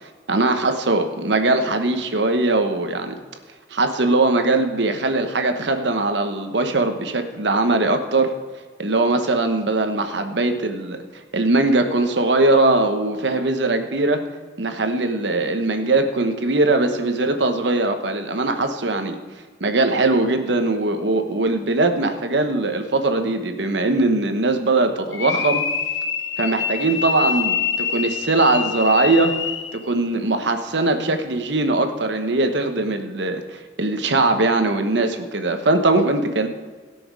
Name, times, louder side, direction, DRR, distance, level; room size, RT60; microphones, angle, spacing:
voice 1, 0.3-3.2 3.7-8.3 8.8-11.0 11.3-14.2 14.6-19.2 19.6-25.6 26.4-29.3 29.7-36.5, right 2 dB, 75° right, 6 dB, 1.2 m, -20 dB
sound 1, 25.1-29.8, left 6 dB, 85° left, 0.9 m, -25 dB
17.0 x 6.2 x 4.7 m, 1.5 s
head